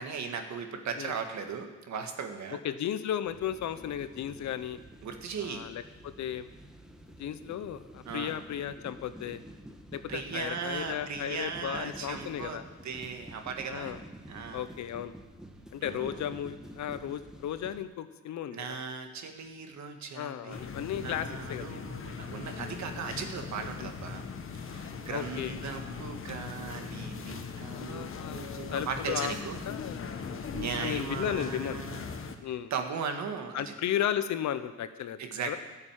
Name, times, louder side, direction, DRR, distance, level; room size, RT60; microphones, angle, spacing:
voice 1, 0.0-2.6 5.0-5.7 8.1-8.3 10.1-14.0 14.3-14.6 15.8-16.2 18.5-20.7 21.0-24.2 24.5-29.6 30.5-32.0 32.7-33.7 35.2-35.6, right 6 dB, 65° right, 5 dB, 1.8 m, -37 dB
voice 2, 2.5-4.8 5.4-6.5 7.2-9.4 9.9-12.6 13.7-14.0 14.5-15.1 15.7-18.7 20.1-21.8 23.8-23.9 25.1-25.6 27.7-29.3 29.7-31.8 32.4-32.7 33.5-35.2 35.5-35.6, left 10 dB, 70° left, 12 dB, 0.9 m, -35 dB
sound 1, 3.2-17.8, equal, ahead, 1.3 m, -49 dB
sound 2, 20.5-32.4, left 5 dB, 45° left, 1.3 m, -40 dB
13.0 x 6.8 x 9.0 m, 1.2 s
cardioid pair, 90°, 30 cm